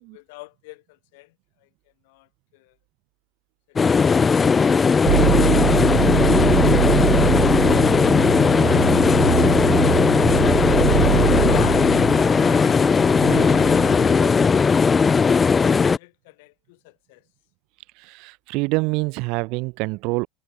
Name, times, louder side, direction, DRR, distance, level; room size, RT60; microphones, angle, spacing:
voice 1, 0.0-2.8 7.6-8.4 13.1-17.3, left 25 dB, 60° left, 6.4 m, -46 dB
sound 1, 3.8-16.0, left 5 dB, 15° left, 0.3 m, -17 dB
sound 2, 5.1-14.6, right 17 dB, 80° right, 1.6 m, -24 dB
Aircraft, 7.6-14.3, left 21 dB, 40° left, 2.7 m, -36 dB
voice 2, 18.0-20.3, right 26 dB, 45° right, 0.6 m, -26 dB
supercardioid pair, 175°, 0 cm